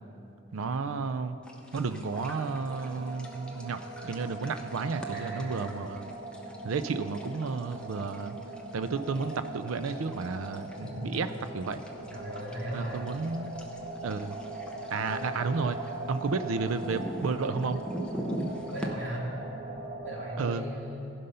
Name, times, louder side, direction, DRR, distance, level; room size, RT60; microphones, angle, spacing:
voice 1, 0.5-1.4 1.7-6.1 6.6-8.4 8.7-11.3 11.5-11.8 12.7-13.6 14.0-14.4 14.9-17.8 20.4-20.6, right 4 dB, 80° right, 11 dB, 0.4 m, -32 dB
sound 1, 1.4-18.9, right 1 dB, 5° left, 0.7 m, -44 dB
sound 2, 2.1-20.5, right 2 dB, 45° right, 1.4 m, -41 dB
voice 2, 5.1-5.7 10.8-11.2 12.1-13.0 18.7-19.3 20.0-21.1, right 1 dB, 60° right, -4 dB, 2.4 m, -37 dB
15.5 x 5.5 x 5.5 m, 2.9 s
head